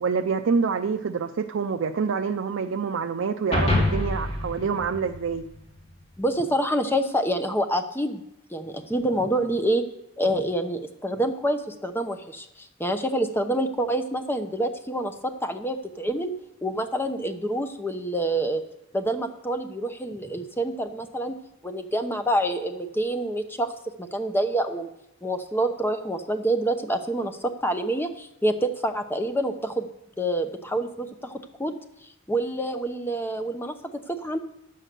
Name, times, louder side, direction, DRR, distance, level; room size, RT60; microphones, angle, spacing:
voice 1, 0.0-5.4, right 5 dB, 65° right, 6 dB, 0.4 m, -26 dB
sound 1, 3.5-6.0, left 1 dB, 30° left, 2.5 m, -26 dB
voice 2, 6.2-8.2 8.5-9.8 10.2-16.3 16.6-18.6 18.9-21.3 21.6-23.7 24.0-24.9 25.2-29.9 30.2-31.8 32.3-33.7 34.1-34.4, right 1 dB, 10° left, 7 dB, 0.8 m, -27 dB
9.8 x 7.6 x 6.7 m, 0.82 s
head